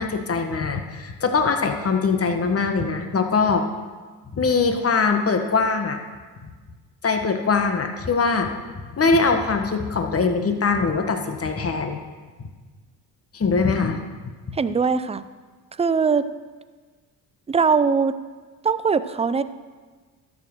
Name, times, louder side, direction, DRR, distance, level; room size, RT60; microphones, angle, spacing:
voice 1, 0.0-3.7 4.3-6.0 7.0-8.5 9.0-12.0 13.3-14.0 14.2-14.6, left 4 dB, 35° left, 6 dB, 1.3 m, -22 dB
voice 2, 14.5-15.2 15.8-16.3 17.5-18.2 18.6-19.4, right 5 dB, 15° right, 13 dB, 0.4 m, -21 dB
12.5 x 5.2 x 6.2 m, 1.4 s
supercardioid pair, 65°, 42 cm